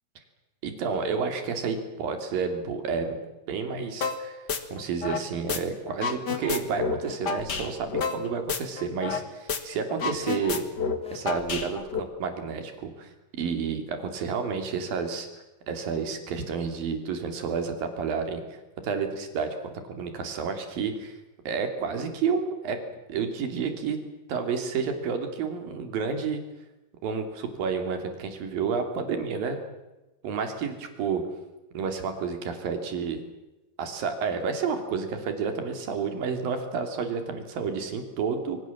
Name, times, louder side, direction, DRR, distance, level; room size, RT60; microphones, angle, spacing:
voice 1, 0.6-3.2 3.5-4.4 4.7-10.6 11.1-15.3 15.7-18.4 18.8-21.2 21.5-22.8 23.1-24.0 24.3-26.4 27.0-29.6 30.2-31.2 31.7-33.2 33.8-38.6, right 5 dB, 60° right, 6 dB, 4.6 m, -30 dB
sound 1, 4.0-4.2 4.5-5.6 5.9-9.2 9.5-9.6 9.9-12.0, left 5 dB, 45° left, 1.3 m, -29 dB
26.5 x 23.5 x 7.4 m, 1.0 s
omnidirectional pair, 4.7 m